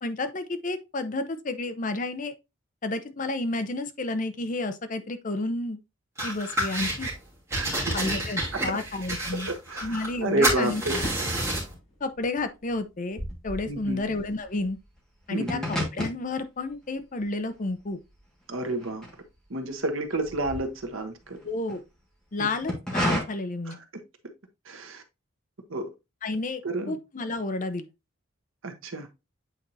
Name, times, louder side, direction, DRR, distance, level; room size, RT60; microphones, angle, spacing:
voice 1, 0.0-2.3 2.8-5.8 6.2-7.1 7.9-9.5 9.8-10.8 12.0-14.8 15.3-18.0 21.4-21.8 22.3-23.8 26.2-27.9, left 2 dB, 40° left, 0.6 m, -31 dB
sound 1, 6.2-7.1 7.5-10.2 10.4-11.7, right 1 dB, 15° right, 2.7 m, -29 dB
voice 2, 7.5-7.9 8.5-8.8 9.3-11.0 13.7-14.0 15.3-15.7 18.5-19.1 19.5-21.4 22.4-22.5 23.7-23.8 24.7-25.0 25.7-25.9 26.6-27.0 28.6-29.1, right 2 dB, 70° right, 1.1 m, -30 dB
Fireworks, 11.0-13.9, left 1 dB, 70° left, 4.2 m, -43 dB
sound 2, 11.8-19.7 20.0-21.8 22.4-23.2, equal, 5° left, 1.7 m, -34 dB
8.3 x 4.4 x 2.7 m
head